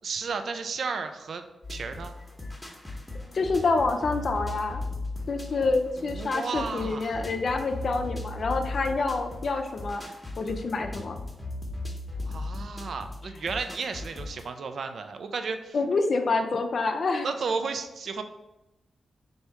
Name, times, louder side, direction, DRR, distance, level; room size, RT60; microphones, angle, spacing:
voice 1, 0.0-1.4 1.7-2.2 6.0-7.2 12.3-15.8 17.2-18.2, right 5 dB, 70° right, 8 dB, 0.4 m, -33 dB
sound 1, 1.6-14.5, left 2 dB, 10° left, 0.9 m, -37 dB
voice 2, 3.3-4.8 5.3-10.0 10.4-11.2 15.7-17.3, left 3 dB, 60° left, 6 dB, 0.4 m, -27 dB
3.4 x 2.7 x 4.5 m, 0.95 s
cardioid pair, 70°, 0 cm